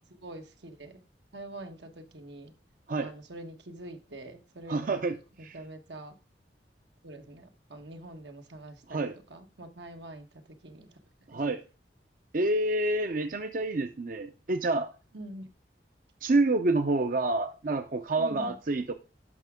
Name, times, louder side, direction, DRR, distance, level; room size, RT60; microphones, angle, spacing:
voice 1, 0.1-1.0 1.3-2.5 3.0-5.0 5.4-6.1 7.0-10.3 10.6-10.9 11.3-11.4 15.1-15.5 18.2-18.6, right 1 dB, 80° right, 1.3 m, -45 dB
voice 2, 4.7-5.2 5.4-5.6 8.9-9.2 11.3-11.6 12.3-14.9 16.2-18.9, right 2 dB, 50° right, 0.6 m, -28 dB
11.0 x 6.0 x 3.6 m
head